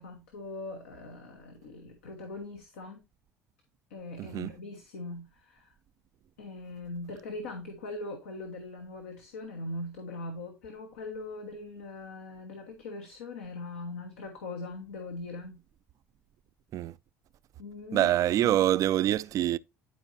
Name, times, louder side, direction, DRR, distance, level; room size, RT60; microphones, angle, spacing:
voice 1, 0.0-3.0 3.9-5.7 6.4-15.6 17.6-18.1 18.4-18.6, left 2 dB, 80° left, 1.2 m, -41 dB
voice 2, 4.2-4.5 16.7-16.9 17.9-19.6, right 12 dB, 50° right, 0.3 m, -25 dB
11.0 x 4.5 x 2.6 m
hypercardioid pair, 70°, 7 cm